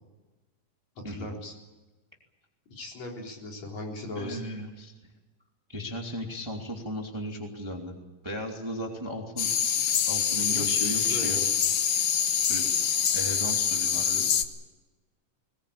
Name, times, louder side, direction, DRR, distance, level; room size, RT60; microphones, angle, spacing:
voice 1, 1.1-1.5 2.7-4.4 10.5-11.6, left 2 dB, 55° left, 0 dB, 5.1 m, -38 dB
voice 2, 4.1-4.9 5.7-8.0 8.2-9.5 9.7-11.4 12.5-12.7 13.1-14.3, equal, 10° right, 1 dB, 2.5 m, -36 dB
sound 1, 9.4-14.4, left 8 dB, 85° left, 1.1 m, -25 dB
21.0 x 20.5 x 8.7 m, 1.1 s
omnidirectional pair, 3.9 m